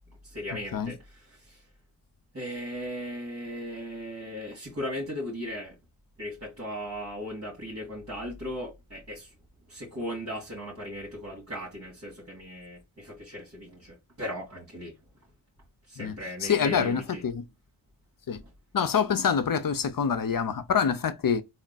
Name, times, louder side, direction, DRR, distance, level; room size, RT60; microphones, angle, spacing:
voice 1, 0.2-1.6 2.3-5.8 6.2-9.4 9.7-15.0 15.9-17.2, equal, 35° right, 1.9 m, -37 dB
voice 2, 16.4-17.4 18.3-18.4 18.7-21.4, left 7 dB, 45° left, 0.6 m, -26 dB
3.5 x 2.2 x 3.9 m
cardioid pair, 60°, 47 cm